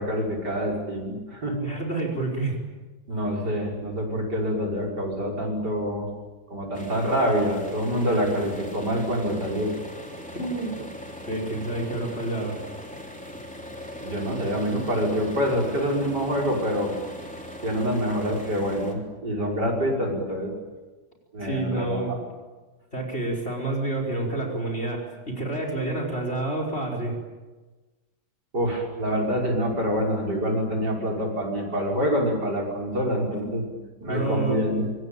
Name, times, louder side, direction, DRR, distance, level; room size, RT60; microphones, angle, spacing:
voice 1, 0.0-1.6 3.1-6.1 6.5-9.7 14.0-16.9 17.6-20.5 21.3-22.2 28.5-33.6 34.0-34.9, equal, 55° right, -1 dB, 6.7 m, -26 dB
voice 2, 1.6-2.6 10.3-10.7 11.3-12.6 21.4-22.1 22.9-27.2 33.3-33.8 34.0-34.6, right 2 dB, 30° left, 2 dB, 5.3 m, -29 dB
sound 1, 6.7-18.9, left 1 dB, 5° left, 3.5 m, -40 dB
26.5 x 24.0 x 9.0 m, 1.2 s
omnidirectional pair, 2.1 m